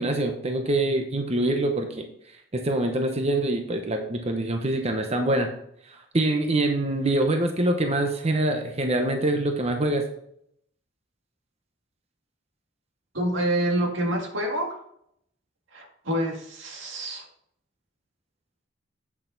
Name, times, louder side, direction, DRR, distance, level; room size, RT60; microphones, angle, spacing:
voice 1, 0.0-2.0 2.5-5.5 5.9-10.0, right 1 dB, 35° right, 4 dB, 0.8 m, -25 dB
voice 2, 13.1-14.8 15.7-17.3, right 1 dB, 90° right, 1 dB, 2.1 m, -27 dB
8.5 x 6.6 x 3.9 m, 0.72 s
head